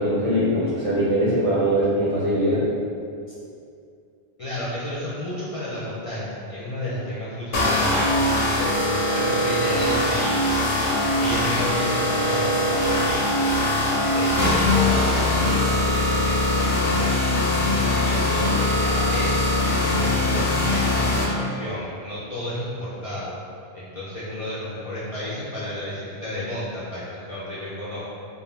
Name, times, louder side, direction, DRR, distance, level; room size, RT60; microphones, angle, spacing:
voice 1, 0.0-2.6, equal, 45° right, -10 dB, 0.5 m, -21 dB
voice 2, 4.4-10.5 11.2-13.5 14.1-19.5 19.8-23.4 23.7-28.1, left 1 dB, 50° left, -10 dB, 0.4 m, -32 dB
sound 1, 7.5-21.2, left 1 dB, 75° left, 0.8 m, -21 dB
2.5 x 2.1 x 3.0 m, 2.4 s
omnidirectional pair, 1.0 m